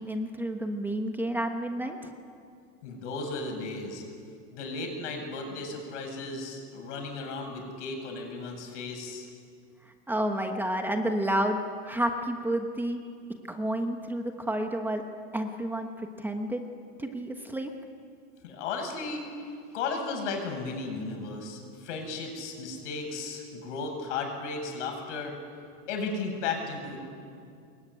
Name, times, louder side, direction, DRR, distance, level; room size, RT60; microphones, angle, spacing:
voice 1, 0.0-2.1 10.1-11.6 11.8-13.0 13.5-15.0 15.3-16.6 17.0-17.7, right 1 dB, 5° right, 4 dB, 1.2 m, -30 dB
voice 2, 2.8-4.0 4.5-9.3 18.4-19.2 19.7-25.3 25.9-27.0, left 4 dB, 75° left, 4 dB, 7.5 m, -35 dB
25.0 x 22.0 x 9.9 m, 2.4 s
supercardioid pair, 160°, 36 cm